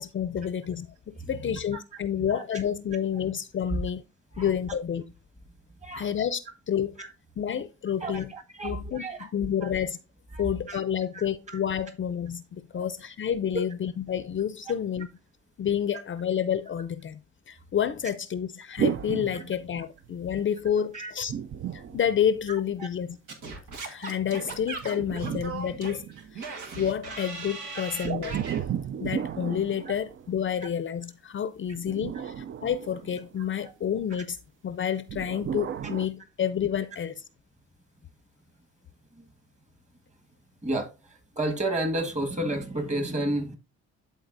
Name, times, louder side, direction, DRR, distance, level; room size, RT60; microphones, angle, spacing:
voice 1, 0.0-4.0 4.4-5.0 6.0-6.4 6.7-7.0 7.4-8.3 8.6-10.0 10.4-15.1 15.6-17.2 17.5-21.3 21.7-23.2 23.8-26.1 26.3-26.5 26.8-28.4 29.0-34.4 34.6-37.2, left 9 dB, 40° left, 0.5 m, -29 dB
voice 2, 1.2-1.8 2.2-2.6 3.7-3.8 4.3-4.5 5.8-6.1 7.0-7.1 8.0-9.3 9.6-9.7 10.3-10.8 11.1-11.6 12.7-12.9 19.3-19.4 20.9-21.1 21.8-22.0 22.5-22.9 39.1-39.2 40.6-43.6, right 1 dB, 25° right, 1.6 m, -32 dB
sound 1, 18.8-20.2 21.2-22.8 24.5-26.5 28.0-30.6 31.7-33.6 35.1-36.1, right 8 dB, 45° right, 0.4 m, -34 dB
Singing / Scratching (performance technique), 23.3-28.6, right 4 dB, 85° right, 1.5 m, -38 dB
12.0 x 4.0 x 2.5 m
cardioid pair, 90°, 30 cm